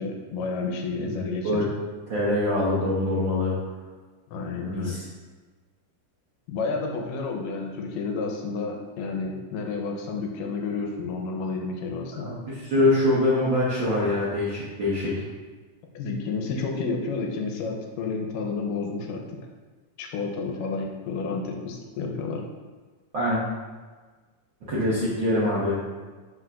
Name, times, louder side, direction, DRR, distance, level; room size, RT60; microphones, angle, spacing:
voice 1, 0.0-1.6 4.3-4.9 6.5-12.4 15.9-19.2 20.0-22.4, left 4 dB, 85° left, 2 dB, 2.4 m, -30 dB
voice 2, 2.1-3.5 4.6-5.0 12.2-15.1 23.1-23.4 24.7-25.8, left 1 dB, 65° right, -8 dB, 1.2 m, -24 dB
11.0 x 4.7 x 2.5 m, 1.4 s
omnidirectional pair, 3.9 m